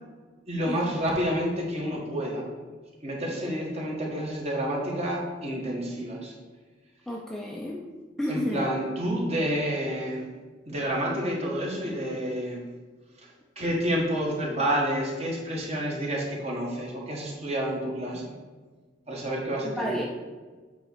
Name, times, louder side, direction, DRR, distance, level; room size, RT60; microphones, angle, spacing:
voice 1, 0.5-2.5 3.0-6.3 8.3-10.2 10.7-12.7 13.5-18.3 19.1-19.9, equal, 35° right, -2 dB, 1.5 m, -29 dB
voice 2, 7.1-7.8 8.2-8.7 19.6-20.1, equal, ahead, -1 dB, 0.4 m, -31 dB
8.1 x 3.1 x 6.2 m, 1.4 s
head